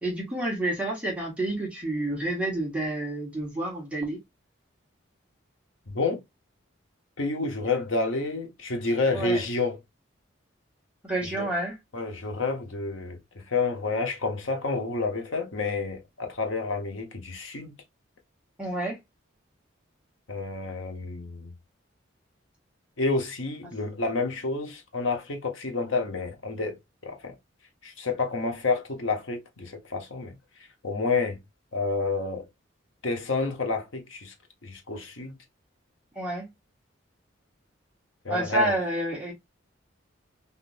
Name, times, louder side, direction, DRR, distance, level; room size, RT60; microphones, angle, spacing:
voice 1, 0.0-4.2 9.1-9.4 11.0-11.8 18.6-19.0 36.1-36.5 38.3-39.3, right 1 dB, 5° right, 1.2 m, -29 dB
voice 2, 5.9-6.2 7.2-9.8 11.2-11.4 11.9-17.8 20.3-21.5 23.0-26.8 27.0-27.3 27.8-30.4 30.8-31.4 31.7-32.5 33.0-34.3 34.6-35.3 38.2-38.7, left 3 dB, 70° left, 1.0 m, -29 dB
3.6 x 2.7 x 2.5 m
head